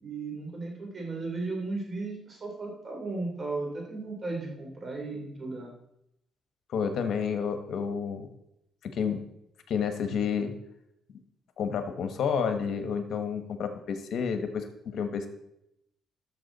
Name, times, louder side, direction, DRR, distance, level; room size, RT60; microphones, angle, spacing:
voice 1, 0.0-5.7, right 3 dB, 40° right, 0 dB, 3.4 m, -35 dB
voice 2, 6.7-8.3 8.8-9.2 9.7-10.5 11.6-15.3, left 6 dB, 65° left, 8 dB, 1.2 m, -30 dB
12.0 x 6.6 x 4.1 m, 0.80 s
cardioid pair, 90°, 0 cm